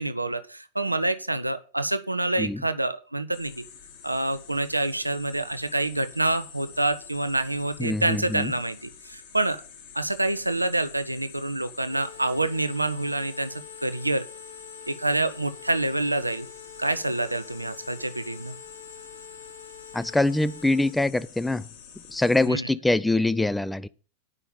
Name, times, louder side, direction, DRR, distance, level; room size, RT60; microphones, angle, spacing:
voice 1, 0.0-3.6 4.0-9.6 9.9-14.3 14.9-16.5 16.8-18.6 22.5-22.7, right 2 dB, 85° right, 0.7 m, -27 dB
sound 1, 3.3-22.5, left 7 dB, 50° left, 2.3 m, -47 dB
voice 2, 7.8-8.5 19.9-21.7 22.1-23.9, left 2 dB, 5° left, 0.5 m, -24 dB
sound 2, 11.9-20.9, left 7 dB, 85° left, 1.7 m, -46 dB
9.7 x 5.6 x 7.0 m
figure-of-eight pair, 90°, 0 cm